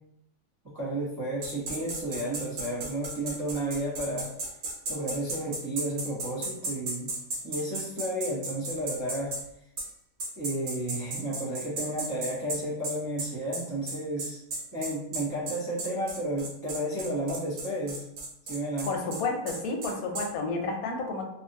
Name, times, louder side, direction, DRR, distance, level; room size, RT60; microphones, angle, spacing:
voice 1, 0.7-4.3 4.9-7.1 7.4-9.4 10.4-14.4 14.7-18.0 18.4-18.9, right 1 dB, 20° right, -7 dB, 0.4 m, -32 dB
sound 1, 1.4-9.4 9.8-9.9 10.2-20.3, right 2 dB, 70° right, 1.2 m, -35 dB
voice 2, 18.9-21.2, left 3 dB, 90° left, 2 dB, 1.1 m, -31 dB
2.7 x 2.4 x 2.6 m, 0.75 s
omnidirectional pair, 1.5 m